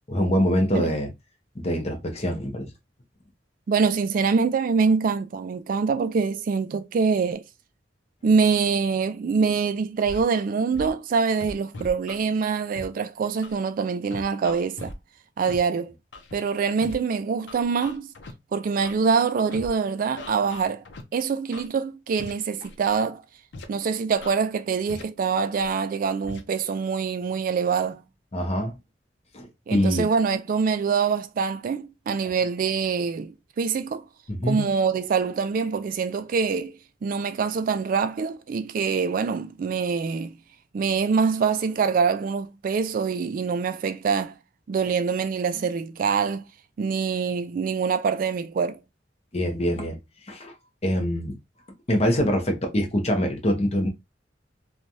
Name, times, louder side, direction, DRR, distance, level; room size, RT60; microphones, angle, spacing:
voice 1, 0.1-1.1 1.5-2.7 28.3-28.7 29.3-30.1 34.3-34.7 49.3-50.0 50.3-50.5 50.8-51.4 51.9-53.9, equal, 35° left, 0.8 m, -24 dB
voice 2, 3.7-7.4 8.2-14.9 15.4-15.9 16.3-18.1 18.5-20.8 21.1-23.2 23.7-28.0 29.7-34.0 34.4-36.8 37.0-40.4 40.7-44.4 44.7-46.5 46.8-48.8, right 5 dB, 50° right, 0.3 m, -25 dB
Scratching (performance technique), 10.1-10.2 10.7-10.9 11.4-12.2 12.8-12.9 13.4-13.6 14.1-15.0 15.5-15.6 16.1-16.3 16.8-17.0 17.5-18.3 18.8-19.0 19.5-19.7 20.2-21.0 21.5-21.7 22.2-22.3 22.6-23.0 23.5-23.7 24.1-24.3 24.9-25.0 25.6-25.7 26.2-26.4, left 2 dB, 75° left, 0.6 m, -39 dB
3.1 x 2.2 x 2.6 m
head